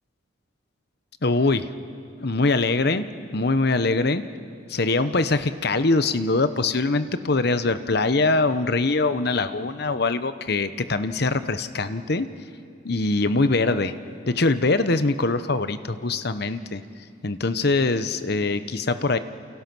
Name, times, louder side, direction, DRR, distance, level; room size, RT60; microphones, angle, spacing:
voice 1, 1.2-1.7 2.2-3.1 3.3-4.2 4.7-12.3 12.8-13.9 14.3-16.8 17.2-19.2, left 3 dB, 55° left, 11 dB, 0.9 m, -23 dB
29.5 x 28.5 x 6.2 m, 2.4 s
head